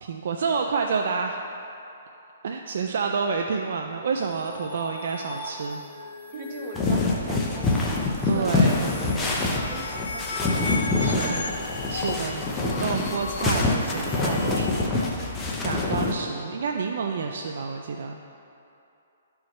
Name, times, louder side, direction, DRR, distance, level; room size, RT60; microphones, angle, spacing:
voice 1, 0.0-1.4 2.4-5.8 8.3-8.8 9.1-9.7 11.0-11.5 11.9-18.2, right 5 dB, 65° right, 3 dB, 0.4 m, -29 dB
sound 1, 4.2-14.8, left 3 dB, 70° left, 0.8 m, -37 dB
voice 2, 6.3-8.7 9.5-10.7 11.1-11.5, right 3 dB, 40° right, 0 dB, 1.1 m, -40 dB
sound 2, 6.8-16.1, left 3 dB, 10° left, 0.7 m, -25 dB
12.5 x 4.7 x 3.1 m, 2.8 s
hypercardioid pair, 155°, 0 cm